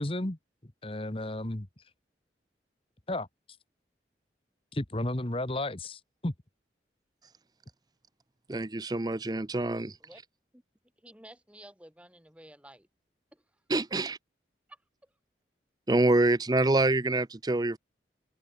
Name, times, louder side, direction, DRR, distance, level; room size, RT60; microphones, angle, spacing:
voice 1, 0.0-1.7 3.1-3.3 4.7-6.3, left 1 dB, 30° left, 1.5 m, -33 dB
voice 2, 8.5-9.9 13.7-14.2 15.9-17.8, right 2 dB, 25° right, 0.6 m, -26 dB
voice 3, 11.0-12.9 13.3-13.4 14.7-15.1, right 1 dB, 5° right, 4.0 m, -52 dB
open air
head